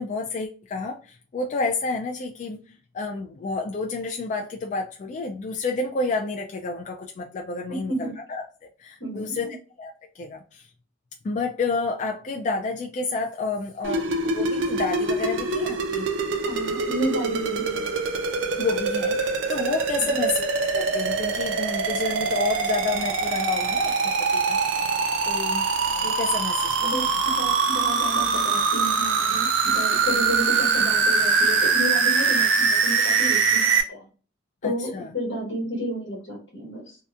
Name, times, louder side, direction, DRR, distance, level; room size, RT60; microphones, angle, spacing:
voice 1, 0.0-8.4 8.8-9.5 9.8-10.6 11.2-16.1 18.6-23.9 24.3-24.6 25.2-25.7 26.0-26.7 34.6-35.1, left 3 dB, 40° left, 1 dB, 0.3 m, -30 dB
voice 2, 7.7-8.1 9.0-9.5 16.4-17.8 20.0-20.2 26.8-34.1 34.6-37.0, equal, 90° left, -3 dB, 1.2 m, -31 dB
sound 1, 13.8-33.8, right 4 dB, 90° right, 0.4 m, -23 dB
2.8 x 2.2 x 2.3 m, 0.36 s
head